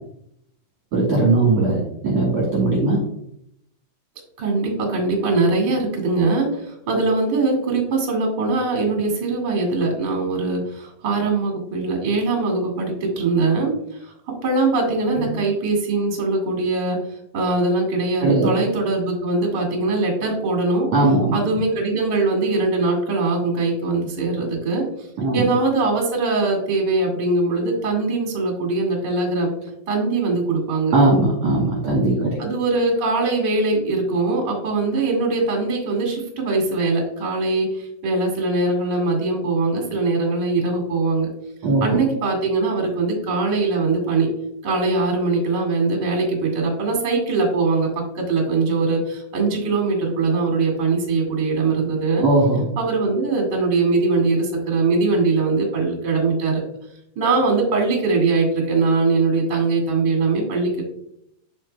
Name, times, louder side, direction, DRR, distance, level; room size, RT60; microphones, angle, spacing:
voice 1, 0.9-3.0 15.2-15.3 18.2-18.5 20.9-21.3 25.2-25.5 30.9-32.3 41.6-42.0 52.2-52.6, right 2 dB, 55° right, -4 dB, 2.0 m, -19 dB
voice 2, 4.4-17.1 17.3-20.9 21.3-24.9 25.3-29.5 29.9-30.9 32.4-41.3 41.8-44.3 44.6-52.3 52.8-56.6 57.2-60.8, right 3 dB, 35° right, 1 dB, 1.9 m, -21 dB
7.4 x 7.2 x 2.2 m, 0.74 s
omnidirectional pair, 4.5 m